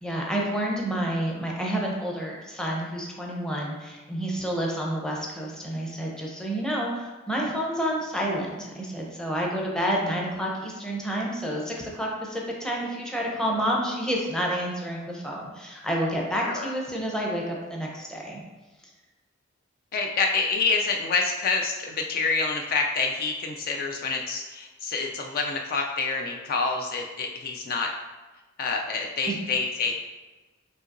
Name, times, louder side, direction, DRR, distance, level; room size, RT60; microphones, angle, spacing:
voice 1, 0.0-18.4 29.3-29.4, equal, 5° left, -2 dB, 0.7 m, -29 dB
voice 2, 19.9-27.9 28.6-29.9, left 4 dB, 45° left, 2 dB, 0.3 m, -27 dB
5.5 x 2.9 x 2.5 m, 1.2 s
head